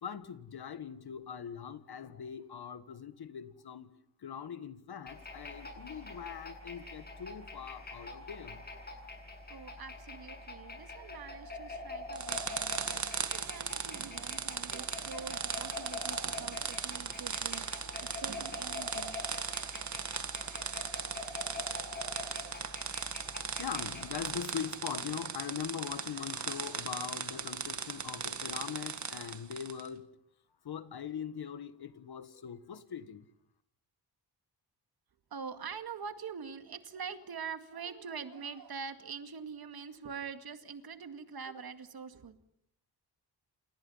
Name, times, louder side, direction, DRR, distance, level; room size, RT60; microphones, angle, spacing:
voice 1, 0.0-3.9 4.2-8.6 23.6-30.1 30.6-33.3, left 8 dB, 65° left, 1.7 m, -41 dB
sound 1, 5.1-24.4, left 2 dB, 20° left, 7.5 m, -45 dB
voice 2, 9.5-19.2 35.3-42.3, right 6 dB, 60° right, 2.2 m, -44 dB
sound 2, 12.1-29.9, right 6 dB, 40° right, 1.9 m, -38 dB
29.0 x 28.5 x 5.8 m
wide cardioid pair, 130°, 42 cm